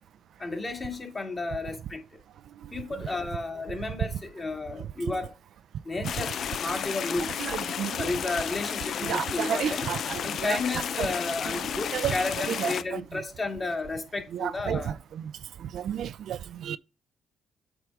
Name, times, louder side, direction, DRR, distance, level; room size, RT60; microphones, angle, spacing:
voice 1, 0.4-2.2 2.7-5.3 5.8-7.5 8.0-9.9 10.2-15.0, left 3 dB, 30° left, 2.2 m, -32 dB
sound 1, 6.0-12.8, left 8 dB, 65° left, 0.6 m, -32 dB
voice 2, 7.4-8.1 9.0-10.6 11.0-11.1 11.9-12.1 12.6-13.0 14.3-14.9 15.6-16.8, right 10 dB, 70° right, 0.4 m, -31 dB
7.9 x 3.7 x 4.6 m
cardioid pair, 90°, 0 cm